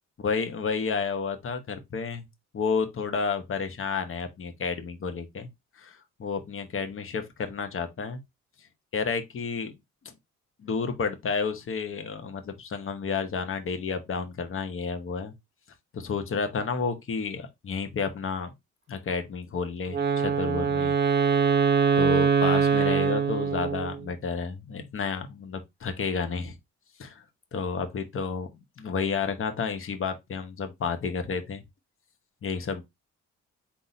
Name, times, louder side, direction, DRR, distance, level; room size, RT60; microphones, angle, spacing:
voice 1, 0.2-2.3 2.5-5.5 5.8-8.2 8.9-9.7 10.0-10.1 10.6-15.3 15.9-18.5 18.9-21.0 21.4-21.5 22.0-26.5 27.0-27.2 27.5-28.5 28.8-31.6 32.4-32.8, left 5 dB, 45° left, 1.1 m, -31 dB
Wind instrument woodwind instrument, 19.9-24.1, right 6 dB, 35° right, 1.0 m, -23 dB
4.1 x 2.8 x 3.9 m
cardioid pair, 90°, 30 cm